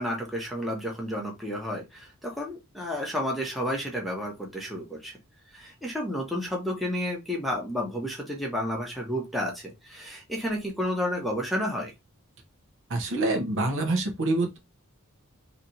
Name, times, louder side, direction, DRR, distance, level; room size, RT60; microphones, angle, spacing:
voice 1, 0.0-5.2 5.5-11.9, equal, ahead, 0.9 m, -31 dB
voice 2, 12.9-14.6, right 2 dB, 60° right, 0.9 m, -26 dB
3.2 x 2.9 x 2.7 m
head